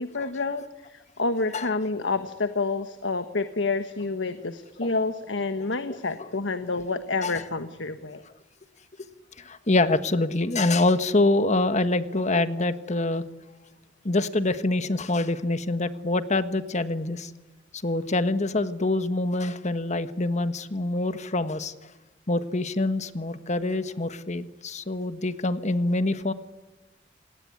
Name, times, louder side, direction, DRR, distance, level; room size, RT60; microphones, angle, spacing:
voice 1, 0.0-8.2, left 3 dB, 85° left, 9 dB, 1.3 m, -29 dB
voice 2, 9.4-13.2 14.0-17.3 17.8-21.7 22.3-26.3, left 2 dB, 40° left, 11 dB, 1.4 m, -25 dB
28.0 x 19.0 x 9.7 m, 1.2 s
head